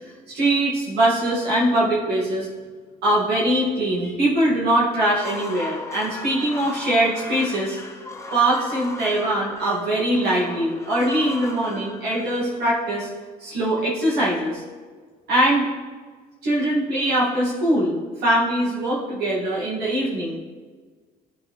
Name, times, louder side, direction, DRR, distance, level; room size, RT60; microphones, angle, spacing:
voice 1, 0.0-2.5 3.0-7.8 8.3-13.1 13.4-14.6 15.3-15.7 16.4-20.4, right 1 dB, 70° right, -7 dB, 2.2 m, -22 dB
sound 1, 5.0-13.1, left 2 dB, 15° left, 0.8 m, -37 dB
11.5 x 4.6 x 3.4 m, 1.5 s
cardioid pair, 110°, 17 cm